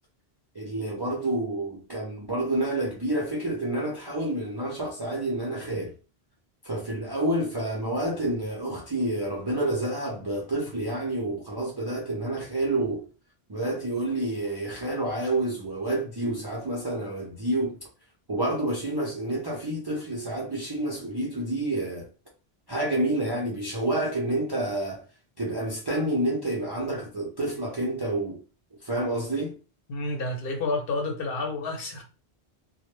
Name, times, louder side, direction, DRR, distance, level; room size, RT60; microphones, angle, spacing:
voice 1, 0.5-5.9 6.6-13.1 13.5-17.8 18.3-22.1 22.7-25.0 25.4-28.4 28.8-29.6, right 1 dB, 40° right, 0.3 m, -29 dB
voice 2, 29.9-32.0, left 2 dB, 65° left, 0.8 m, -30 dB
2.1 x 2.0 x 3.0 m
omnidirectional pair, 1.1 m